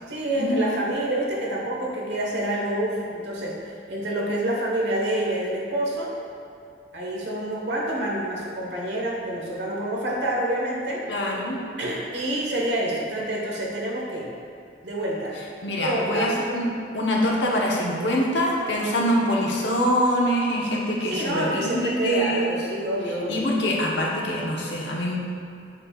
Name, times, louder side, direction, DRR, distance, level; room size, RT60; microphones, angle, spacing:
voice 1, 0.1-6.1 6.9-11.0 11.8-14.3 14.8-15.4 15.8-16.3 21.1-23.4, right 1 dB, 75° right, -4 dB, 1.4 m, -27 dB
voice 2, 11.1-11.6 15.6-16.7 16.9-22.5 23.3-25.1, equal, 85° left, -3 dB, 1.1 m, -24 dB
7.3 x 6.4 x 2.4 m, 2.5 s
head